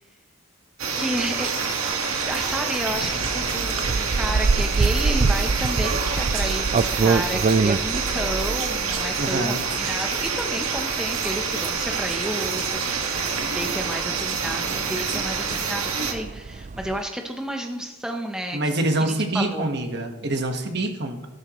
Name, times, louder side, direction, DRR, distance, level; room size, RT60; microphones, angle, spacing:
sound 1, 0.8-16.1, right 5 dB, 85° right, 1.7 m, -27 dB
voice 1, 1.0-1.6 2.3-18.7 19.0-19.7, right 1 dB, 5° right, 2 dB, 0.7 m, -31 dB
sound 2, 2.9-17.0, right 4 dB, 35° right, 0.3 m, -26 dB
voice 2, 9.2-9.6 18.5-21.3, right 2 dB, 50° right, 4 dB, 1.5 m, -25 dB
16.0 x 12.0 x 3.1 m, 1.0 s
head